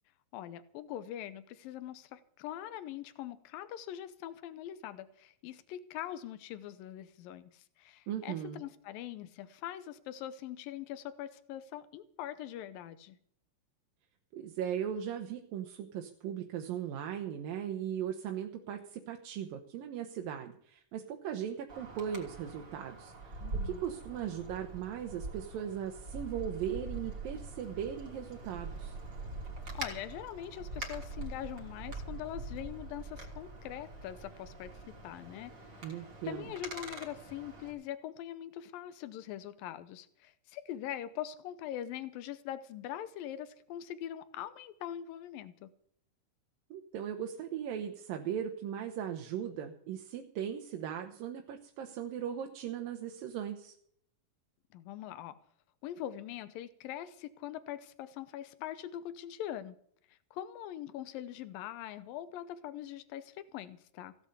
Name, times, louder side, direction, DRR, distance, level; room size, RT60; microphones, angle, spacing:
voice 1, 0.3-13.2 23.4-23.8 29.7-45.7 54.7-55.4 55.8-59.8 60.1-64.2, left 11 dB, 90° left, 12 dB, 2.6 m, -43 dB
voice 2, 8.1-8.6 14.3-23.4 23.6-29.0 35.8-36.5 46.7-53.7, right 9 dB, 85° right, 4 dB, 2.9 m, -38 dB
Wind, 21.7-37.7, right 3 dB, 30° right, 3.6 m, -44 dB
16.5 x 8.2 x 8.1 m, 0.63 s
omnidirectional pair, 4.0 m